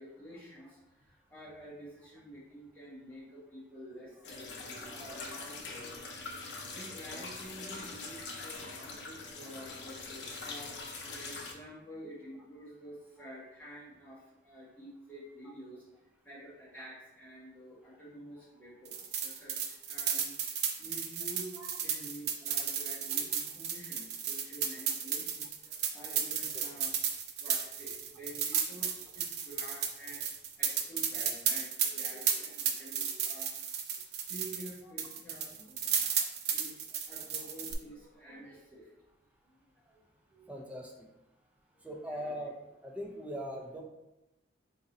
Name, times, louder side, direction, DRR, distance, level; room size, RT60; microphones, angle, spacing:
voice 1, 0.0-15.8 16.2-27.0 27.4-33.5 33.9-34.0 34.3-38.9 39.4-40.0 40.3-40.5 41.7-42.3, equal, 10° left, -8 dB, 1.4 m, -49 dB
sound 1, 4.2-11.5, left 3 dB, 80° left, 0.6 m, -43 dB
sound 2, 18.8-34.7 35.0-37.7, right 7 dB, 60° right, 0.5 m, -34 dB
voice 2, 40.5-40.9 41.8-42.5 42.8-43.8, equal, 5° right, -1 dB, 0.5 m, -40 dB
3.8 x 2.6 x 4.1 m, 0.94 s
head